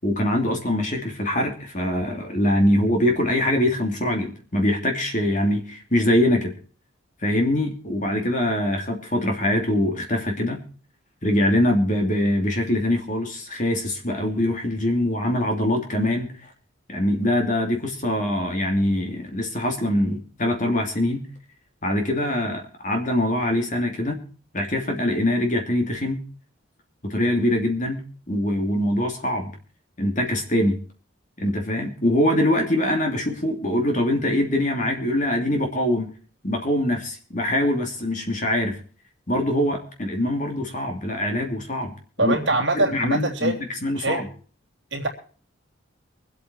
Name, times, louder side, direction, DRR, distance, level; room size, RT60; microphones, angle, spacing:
voice 1, 0.0-6.5 7.2-10.6 11.2-16.3 16.9-21.2 21.8-24.2 24.5-26.2 27.0-28.0 28.3-29.5 30.0-30.8 31.4-36.1 36.4-38.8 39.3-41.9 42.2-42.4 42.7-43.5 43.8-44.2, left 1 dB, 40° left, 3 dB, 2.9 m, -23 dB
voice 2, 42.2-43.5 44.0-44.2 44.9-45.1, right 2 dB, 60° right, 2 dB, 3.3 m, -23 dB
24.0 x 8.5 x 4.5 m, 0.41 s
head